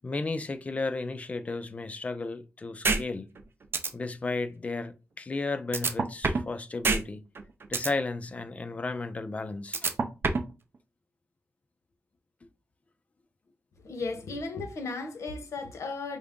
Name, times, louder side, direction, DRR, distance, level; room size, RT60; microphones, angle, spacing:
voice 1, 0.0-3.3 3.9-7.2 7.7-9.8, left 3 dB, 30° left, 0.4 m, -33 dB
sound 1, 2.8-3.0 3.4-3.5 3.7-3.9 5.7-6.5 6.8-7.0 7.3-7.9 9.7-10.5, right 4 dB, 50° right, 0.5 m, -25 dB
voice 2, 13.8-16.2, left 3 dB, 80° left, 0.8 m, -35 dB
4.5 x 2.5 x 3.5 m
wide cardioid pair, 155°, 5 cm